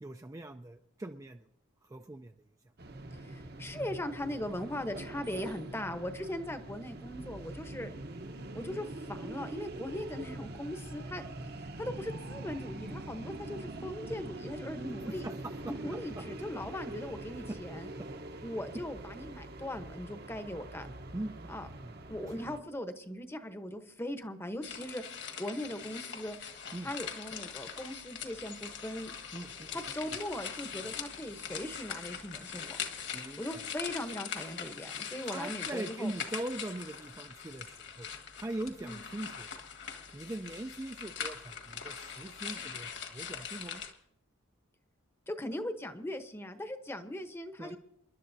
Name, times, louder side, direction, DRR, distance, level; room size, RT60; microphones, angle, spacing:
voice 1, 0.0-1.5 1.8-2.3 15.1-15.7 16.2-16.5 17.5-17.6 18.3-18.4 20.8-21.9 26.7-26.9 29.3-29.7 33.1-33.6 35.2-38.1 38.4-39.5 40.1-43.8 47.6-47.8, right 1 dB, 15° right, 5 dB, 0.4 m, -41 dB
sound 1, 2.8-22.6, right 1 dB, 50° right, 0.9 m, -44 dB
voice 2, 3.1-7.9 8.5-11.2 11.6-15.3 15.6-17.9 18.4-20.9 21.5-21.7 22.1-26.4 26.8-29.1 29.7-32.8 33.4-36.1 38.8-39.0 45.3-47.8, left 1 dB, 10° left, 8 dB, 0.9 m, -39 dB
sound 2, 24.6-43.9, left 7 dB, 55° left, 1.7 m, -42 dB
sound 3, 27.2-42.9 43.1-43.3, left 7 dB, 80° left, 2.3 m, -57 dB
28.0 x 11.5 x 2.7 m, 0.77 s
head